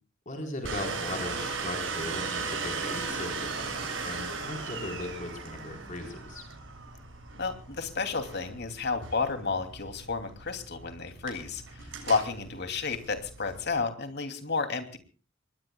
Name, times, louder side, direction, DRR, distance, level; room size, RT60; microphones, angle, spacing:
voice 1, 0.3-6.4, left 2 dB, 40° left, 3 dB, 4.1 m, -38 dB
Domestic sounds home sounds, 0.6-13.7, right 4 dB, 70° right, 7.3 m, -37 dB
voice 2, 7.4-15.0, left 4 dB, 55° left, 7 dB, 2.8 m, -31 dB
25.0 x 21.0 x 2.3 m, 0.37 s
head